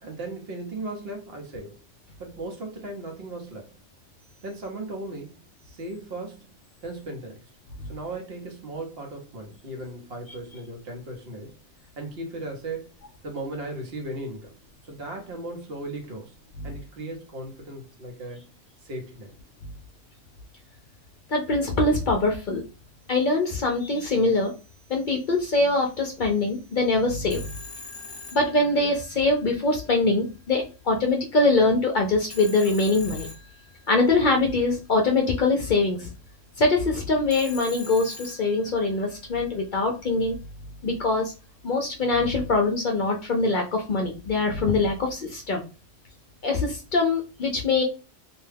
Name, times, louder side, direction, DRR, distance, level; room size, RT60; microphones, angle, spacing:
voice 1, 0.0-1.8 2.2-3.7 4.4-5.4 5.7-6.5 6.8-7.4 7.9-11.5 12.0-12.8 13.2-14.5 14.8-16.3 16.6-18.5 18.8-19.3, right 2 dB, 65° right, 1 dB, 1.0 m, -36 dB
voice 2, 21.3-22.6 23.1-24.5 24.9-27.6 28.3-33.3 33.9-36.1 36.6-40.4 40.8-41.3 41.6-45.6 46.4-47.8, left 3 dB, 55° left, 1 dB, 0.6 m, -23 dB
Telephone, 27.3-29.2 32.3-34.1 37.3-39.0, left 3 dB, 25° left, 0.8 m, -42 dB
2.7 x 2.2 x 3.3 m, 0.32 s
omnidirectional pair, 1.2 m